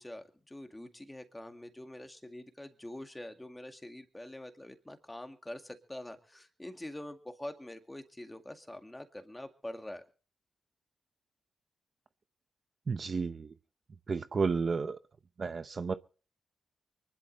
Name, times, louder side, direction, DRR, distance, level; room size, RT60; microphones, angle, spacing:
voice 1, 0.0-10.0, left 1 dB, 10° left, 6 dB, 2.1 m, -45 dB
voice 2, 12.9-13.5 14.1-15.0 15.4-15.9, right 5 dB, 45° right, 11 dB, 0.7 m, -32 dB
24.0 x 11.5 x 4.0 m, 0.39 s
cardioid pair, 100°, 0 cm